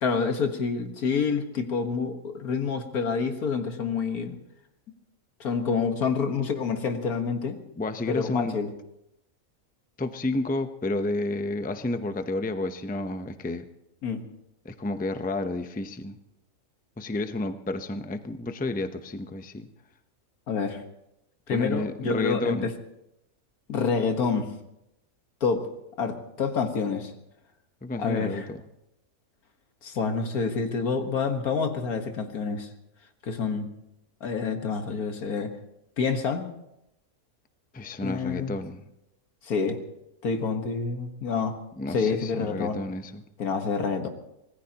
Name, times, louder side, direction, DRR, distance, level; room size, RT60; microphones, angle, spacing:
voice 1, 0.0-4.4 5.4-7.6 8.1-8.7 14.0-14.2 20.5-20.8 21.5-22.7 23.7-24.5 25.4-25.6 26.0-27.1 28.0-28.5 29.8-32.7 33.2-33.7 34.2-35.5 36.0-36.4 38.0-38.6 39.4-39.8 40.2-41.6 41.9-42.8 43.4-44.1, left 5 dB, 85° left, 6 dB, 1.9 m, -27 dB
voice 2, 7.8-8.5 10.0-13.6 14.6-16.2 17.0-19.7 21.5-22.7 27.8-28.6 37.7-38.8 41.8-43.2, left 2 dB, 10° left, 8 dB, 0.5 m, -31 dB
25.0 x 18.5 x 2.9 m, 0.85 s
omnidirectional pair, 1.5 m